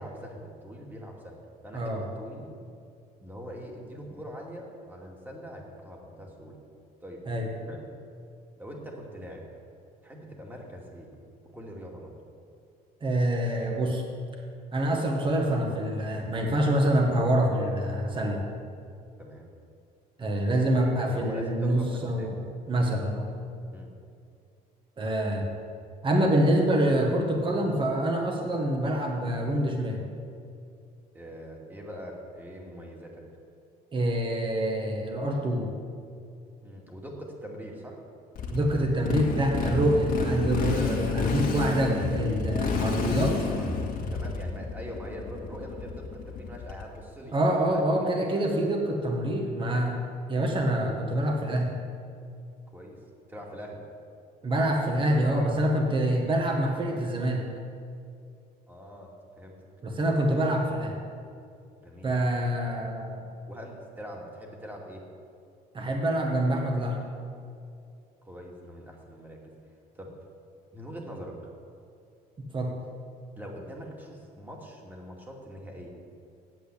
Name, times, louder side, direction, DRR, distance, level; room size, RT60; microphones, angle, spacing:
voice 1, 0.0-1.4 1.6-2.4 3.2-6.6 7.0-7.2 7.7-7.8 8.6-9.5 10.0-11.1 11.4-12.1 19.2-19.5 21.1-22.3 23.7-23.9 31.1-33.2 36.6-38.0 43.6-43.8 44.1-47.4 47.6-47.8 48.1-48.4 52.7-52.9 53.3-53.8 58.7-59.6 61.8-62.5 63.5-65.0 68.2-69.5 69.9-70.1 70.7-71.4 73.4-75.9, equal, 10° right, -1 dB, 2.5 m, -42 dB
voice 2, 13.0-14.0 14.7-18.4 20.2-22.3 22.7-23.3 25.0-25.5 26.0-30.0 33.9-35.7 38.5-43.4 47.3-51.7 54.4-57.4 59.8-60.9 62.0-63.3 65.7-67.0 72.4-72.7, right 1 dB, 30° right, 1 dB, 1.7 m, -26 dB
Motorcycle, 38.3-47.0, left 4 dB, 60° left, 2.0 m, -30 dB
9.4 x 8.0 x 8.6 m, 2.5 s
cardioid pair, 110°, 17 cm